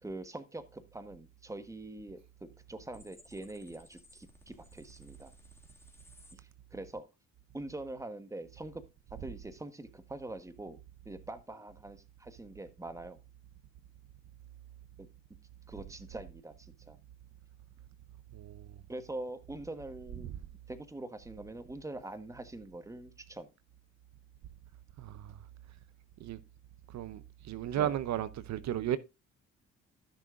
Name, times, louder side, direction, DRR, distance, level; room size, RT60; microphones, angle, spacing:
voice 1, 0.0-5.3 6.3-7.1 7.5-8.8 9.1-10.8 11.0-13.2 15.0-15.1 15.7-17.0 18.9-20.3 20.7-23.5 27.8-28.0, right 2 dB, 10° right, 1.2 m, -44 dB
sound 1, 2.9-6.3, left 1 dB, 10° left, 2.3 m, -59 dB
voice 2, 18.3-18.7 25.0-25.4 26.2-26.4 26.9-29.0, right 11 dB, 65° right, 0.6 m, -35 dB
14.5 x 6.3 x 2.5 m
cardioid pair, 90°, 30 cm